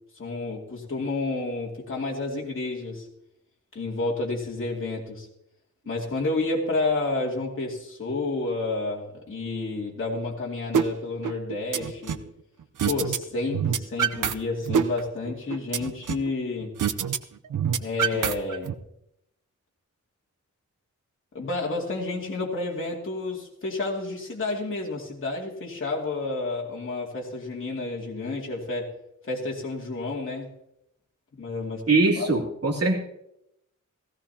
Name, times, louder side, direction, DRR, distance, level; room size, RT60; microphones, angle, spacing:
voice 1, 0.2-3.1 3.7-5.3 5.9-12.2 12.9-16.7 17.8-18.7 21.3-28.9 29.2-30.5 31.4-31.9 32.2-32.3, left 3 dB, 45° left, -4 dB, 2.3 m, -30 dB
sound 1, 10.7-10.9 11.2-12.3 12.8-13.2 13.5-14.3 14.7-16.3 16.8-17.2 17.5-18.7, right 8 dB, 85° right, 0.7 m, -25 dB
voice 2, 31.9-33.0, right 3 dB, 50° right, -1 dB, 2.7 m, -22 dB
16.5 x 16.0 x 2.8 m, 0.80 s
wide cardioid pair, 150°, 30 cm